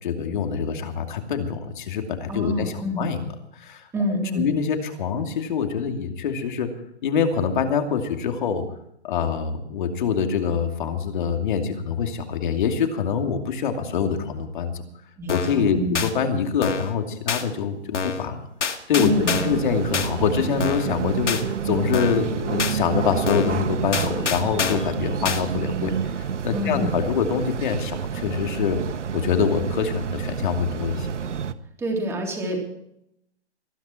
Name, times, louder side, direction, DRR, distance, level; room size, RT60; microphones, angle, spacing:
voice 1, 0.0-3.2 3.5-3.8 4.3-6.7 7.0-8.6 9.0-14.8 15.3-18.5 18.9-25.9 26.4-28.8 29.1-31.1, left 6 dB, 45° left, 5 dB, 2.6 m, -25 dB
voice 2, 2.3-3.1 3.9-4.5 15.2-16.1 19.0-19.4 26.5-27.0 31.8-32.6, equal, 10° right, 0 dB, 3.4 m, -27 dB
sound 1, 15.3-15.6 15.9-16.1 16.6-16.9 17.3-17.4 17.9-18.3 18.6-19.6 19.9-20.1 20.6-20.9 21.3-21.4 21.9-22.3 22.6-22.8 23.3-23.6 23.9-24.9 25.2-25.4, left 6 dB, 85° left, 2.3 m, -26 dB
sound 2, 19.1-31.5, right 7 dB, 90° right, 1.3 m, -29 dB
20.5 x 12.0 x 4.5 m, 0.75 s
hypercardioid pair, 160°, 35 cm